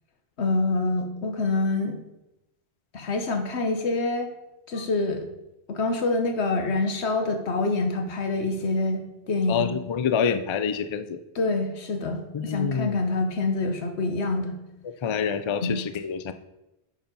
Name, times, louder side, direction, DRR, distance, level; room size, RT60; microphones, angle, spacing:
voice 1, 0.4-2.0 2.9-4.3 4.7-5.3 5.7-9.7 11.3-14.6 15.6-15.8, left 3 dB, 85° left, 5 dB, 1.3 m, -26 dB
voice 2, 9.5-11.2 12.3-13.0 15.0-16.3, left 7 dB, 50° left, 10 dB, 0.3 m, -27 dB
8.8 x 4.7 x 5.4 m, 0.94 s
omnidirectional pair, 1.1 m